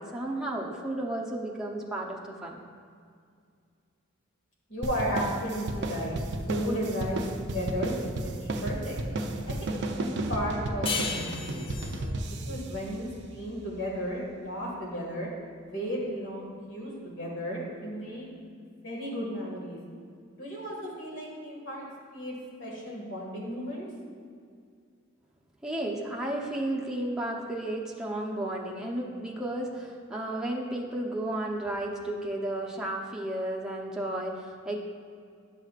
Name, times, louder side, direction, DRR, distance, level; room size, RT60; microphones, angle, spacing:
voice 1, 0.0-2.6 25.6-34.8, right 1 dB, 5° right, -3 dB, 0.8 m, -33 dB
voice 2, 4.7-6.2 6.5-9.0 9.5-12.1 12.5-15.3 15.6-18.3 18.8-19.8 20.4-21.9 22.1-23.9, equal, 65° left, -3 dB, 1.9 m, -34 dB
sound 1, 4.8-13.7, right 2 dB, 60° right, 0.5 m, -33 dB
sound 2, 10.9-14.0, left 5 dB, 25° left, 0.4 m, -36 dB
10.5 x 6.3 x 2.4 m, 2.2 s
head